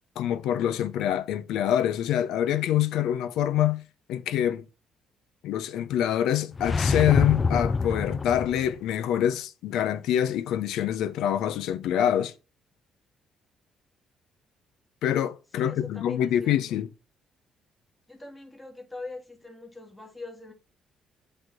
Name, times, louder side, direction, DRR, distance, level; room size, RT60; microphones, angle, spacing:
voice 1, 0.2-3.8 4.1-4.7 5.4-12.3 15.0-16.9, left 10 dB, 80° left, 0.7 m, -25 dB
sound 1, 6.5-8.8, left 4 dB, 35° left, 0.4 m, -26 dB
voice 2, 15.6-16.6 18.1-20.5, left 3 dB, 15° left, 2.2 m, -42 dB
8.0 x 3.5 x 6.0 m
supercardioid pair, 70°, 0 cm